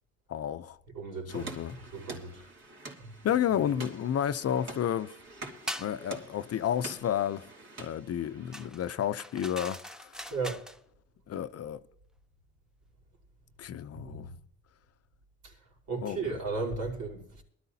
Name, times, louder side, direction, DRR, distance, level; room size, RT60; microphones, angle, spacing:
voice 1, 0.3-0.8 1.3-1.7 3.2-5.1 5.8-7.5 7.8-10.1 11.3-11.8 13.6-14.3 16.0-16.2, left 10 dB, 55° left, 0.7 m, -31 dB
voice 2, 0.9-1.6 1.9-2.5 3.0-3.2 10.3-10.7 13.9-14.4 15.4-15.6 15.9-17.4, right 4 dB, 75° right, 4.6 m, -35 dB
sound 1, 1.3-8.7, right 2 dB, 55° right, 3.6 m, -46 dB
sound 2, 5.7-6.0 8.5-10.8, equal, ahead, 0.7 m, -41 dB
22.5 x 12.5 x 2.8 m
cardioid pair, 90°, 30 cm